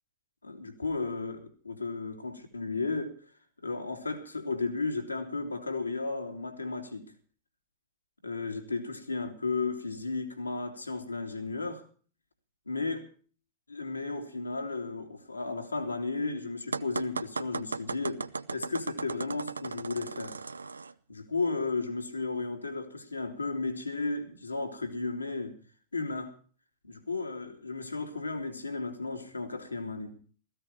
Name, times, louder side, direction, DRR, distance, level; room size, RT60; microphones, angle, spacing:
voice 1, 0.4-3.1 3.6-7.1 8.2-11.8 12.7-13.1 13.7-20.4 21.1-25.6 25.9-26.3 26.8-30.2, left 3 dB, 80° left, 3.0 m, -34 dB
sound 1, 16.7-20.9, right 4 dB, 75° right, 0.6 m, -36 dB
17.0 x 15.5 x 4.5 m
figure-of-eight pair, 90°, 0 cm